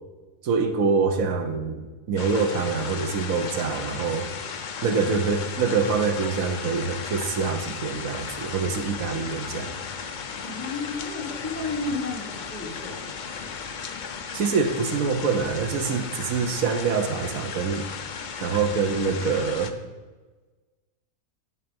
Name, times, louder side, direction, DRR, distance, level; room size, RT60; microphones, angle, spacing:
voice 1, 0.4-4.3 4.8-9.8 14.3-17.9 18.4-19.7, right 5 dB, 70° right, 6 dB, 1.3 m, -25 dB
sound 1, 2.2-19.7, left 6 dB, 60° left, 0.5 m, -35 dB
voice 2, 10.4-13.0, left 3 dB, 20° left, -6 dB, 3.0 m, -32 dB
11.0 x 4.1 x 5.3 m, 1.3 s
omnidirectional pair, 1.5 m